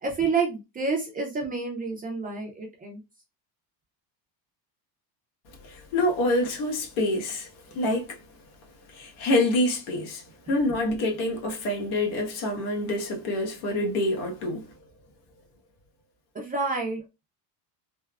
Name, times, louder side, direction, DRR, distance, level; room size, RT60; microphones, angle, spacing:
voice 1, 0.0-3.0 16.3-17.0, right 4 dB, 20° right, 0.4 m, -29 dB
voice 2, 5.6-7.5 7.7-8.2 8.9-14.7, left 1 dB, 75° left, 1.3 m, -26 dB
3.4 x 2.0 x 2.3 m
cardioid pair, 145°, 49 cm